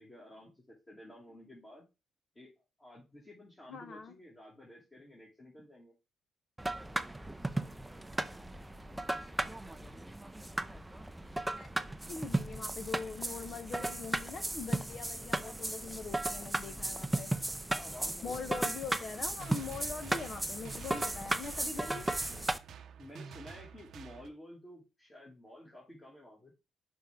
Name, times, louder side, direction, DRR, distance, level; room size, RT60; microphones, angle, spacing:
voice 1, 0.0-1.8 2.3-2.5 2.8-5.9 16.6-17.2 17.7-18.6 23.0-26.5, left 1 dB, 20° left, 2.4 m, -52 dB
voice 2, 3.7-4.1 11.6-11.7 12.1-17.3 18.2-22.2, left 5 dB, 50° left, 1.1 m, -42 dB
sound 1, 6.6-22.6, right 1 dB, 10° right, 0.6 m, -36 dB
sound 2, 19.2-24.3, right 6 dB, 70° right, 0.8 m, -49 dB
6.0 x 4.4 x 3.7 m
cardioid pair, 90°, 0 cm